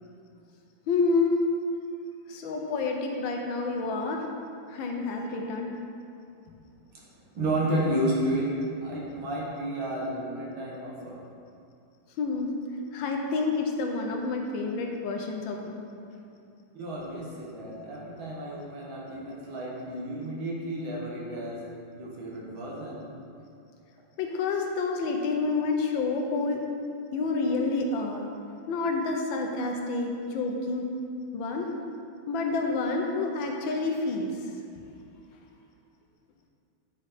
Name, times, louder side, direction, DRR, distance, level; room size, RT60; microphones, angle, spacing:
voice 1, 0.9-1.5 2.3-4.2 4.7-5.7 12.2-12.5 12.9-15.8 24.2-26.6 27.1-28.3 28.7-30.9 31.3-31.7 32.3-34.5, left 3 dB, 75° left, 2 dB, 1.5 m, -28 dB
voice 2, 7.3-8.5 8.8-11.2 16.7-21.6 21.9-23.1, right 1 dB, 75° right, -4 dB, 2.2 m, -31 dB
9.0 x 4.9 x 4.1 m, 2.5 s
omnidirectional pair, 2.2 m